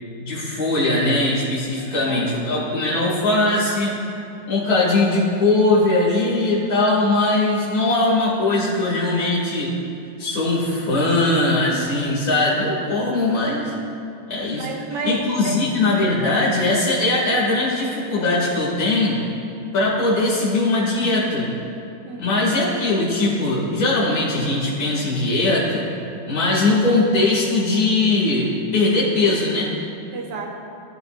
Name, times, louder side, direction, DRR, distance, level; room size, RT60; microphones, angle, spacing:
voice 1, 0.2-4.0 4.5-9.7 10.2-13.7 14.3-14.7 15.0-19.2 19.7-21.5 22.2-25.9 26.3-29.7, left 2 dB, 55° left, -7 dB, 2.9 m, -20 dB
voice 2, 1.9-2.3 13.3-13.5 14.5-15.6 22.0-22.4 30.1-30.6, right 3 dB, 65° right, 1 dB, 1.7 m, -31 dB
17.0 x 9.9 x 2.6 m, 2.5 s
omnidirectional pair, 2.0 m